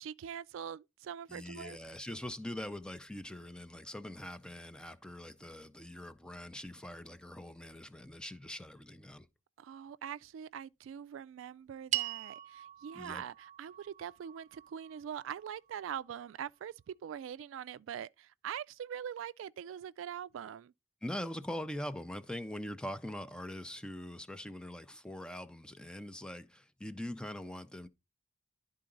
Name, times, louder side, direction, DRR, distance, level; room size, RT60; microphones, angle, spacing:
voice 1, 0.0-1.8 9.6-20.7, right 9 dB, 75° right, 0.3 m, -43 dB
voice 2, 1.3-9.3 12.9-13.2 21.0-27.9, left 1 dB, 5° left, 0.5 m, -43 dB
sound 1, 11.9-16.4, right 13 dB, 40° right, 0.6 m, -42 dB
11.5 x 3.8 x 3.8 m
head